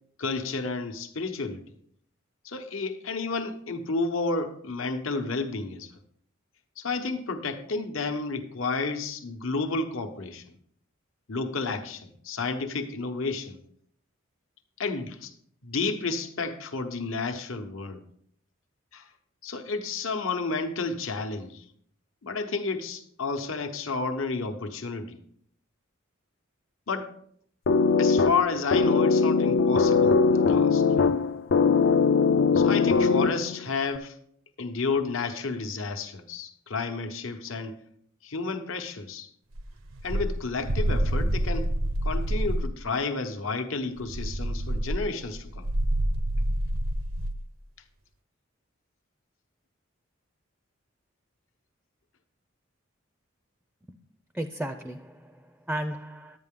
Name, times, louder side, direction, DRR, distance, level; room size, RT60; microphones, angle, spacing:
voice 1, 0.2-1.6 2.4-5.9 6.8-10.4 11.3-13.6 14.8-15.3 15.6-18.0 18.9-19.1 19.4-21.6 22.2-25.2 26.9-27.1 28.0-30.2 30.5-31.1 32.5-34.1 34.6-37.8 38.2-39.3 40.0-41.7 42.0-45.7, left 4 dB, 80° left, 1.0 m, -31 dB
sound 1, 27.7-33.6, left 4 dB, 60° left, 0.4 m, -21 dB
sound 2, 39.6-42.8 44.0-47.4, right 1 dB, 80° right, 0.7 m, -28 dB
voice 2, 54.3-56.4, right 1 dB, 5° right, 0.4 m, -34 dB
11.0 x 9.4 x 3.7 m
head